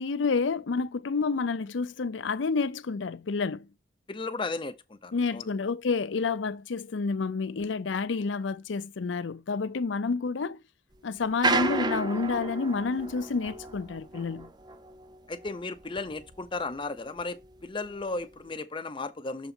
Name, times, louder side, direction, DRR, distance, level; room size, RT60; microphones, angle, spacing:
voice 1, 0.0-3.7 5.1-10.6 11.0-14.5, left 4 dB, 80° left, 0.5 m, -29 dB
voice 2, 4.1-5.5 15.3-19.5, left 3 dB, 30° left, 0.7 m, -35 dB
sound 1, 11.2-16.8 17.2-18.4, right 2 dB, 25° right, 0.5 m, -32 dB
6.8 x 3.9 x 4.4 m
head